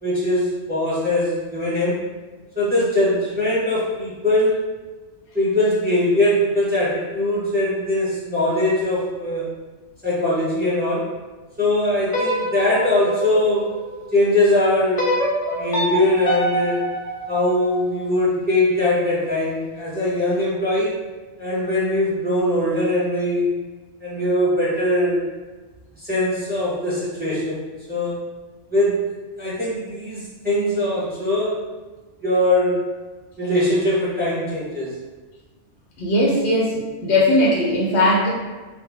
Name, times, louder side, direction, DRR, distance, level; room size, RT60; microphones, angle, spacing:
voice 1, 0.0-2.0 2.5-4.7 5.3-9.5 10.0-11.0 11.6-13.7 14.1-15.1 15.6-16.8 17.3-21.0 21.4-23.5 24.0-25.2 26.0-27.6 27.9-28.1 28.7-29.0 29.4-31.6 32.2-32.8 33.4-34.9, left 1 dB, 10° right, -9 dB, 1.0 m, -21 dB
sound 1, 12.1-14.2 15.0-18.1, equal, 45° left, 0.4 m, -26 dB
voice 2, 36.0-38.3, left 1 dB, 70° left, -3 dB, 1.0 m, -18 dB
4.0 x 2.0 x 3.5 m, 1.3 s
omnidirectional pair, 1.2 m